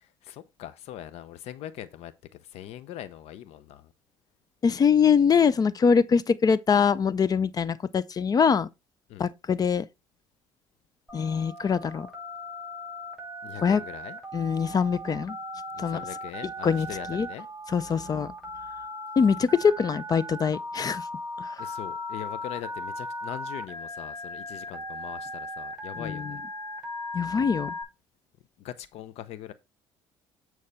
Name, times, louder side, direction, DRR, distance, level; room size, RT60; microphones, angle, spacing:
voice 1, 0.0-3.9 9.1-9.3 13.4-14.2 15.7-17.5 17.9-18.1 21.6-26.4 28.6-29.5, left 11 dB, 70° left, 0.7 m, -41 dB
voice 2, 4.6-8.7 9.2-9.9 11.1-12.1 13.6-13.8 14.3-15.4 15.8-16.0 16.6-17.3 17.7-18.3 19.2-21.0 21.4-21.5 27.1-27.7, left 6 dB, 35° left, 0.5 m, -23 dB
Telephone, 11.1-27.8, left 1 dB, 5° right, 5.6 m, -38 dB
8.7 x 4.7 x 4.2 m
supercardioid pair, 85°, 11 cm